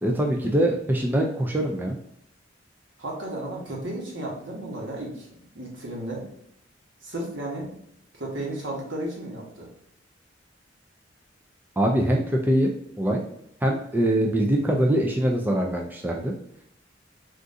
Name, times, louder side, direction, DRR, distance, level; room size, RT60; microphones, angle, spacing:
voice 1, 0.0-2.0 11.8-12.7 13.0-13.2 13.6-16.3, right 1 dB, 10° right, 0 dB, 0.4 m, -23 dB
voice 2, 3.0-5.3 5.5-6.2 7.0-7.7 8.1-9.7, right 1 dB, 80° right, -2 dB, 1.2 m, -33 dB
3.6 x 2.5 x 2.6 m, 0.73 s
head